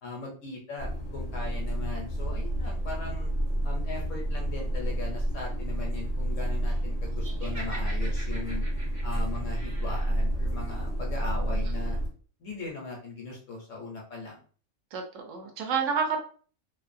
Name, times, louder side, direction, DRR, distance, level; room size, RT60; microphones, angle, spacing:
voice 1, 0.0-3.3 3.6-8.6 9.0-12.0 12.4-14.4, left 3 dB, 65° left, -1 dB, 1.1 m, -39 dB
sound 1, 0.8-12.1, right 1 dB, 45° left, 0.8 m, -30 dB
Laughter, 7.2-10.2, right 1 dB, 30° right, 0.6 m, -45 dB
voice 2, 14.9-16.2, right 6 dB, 70° right, 3 dB, 0.9 m, -29 dB
2.6 x 2.3 x 2.5 m, 0.41 s
omnidirectional pair, 1.5 m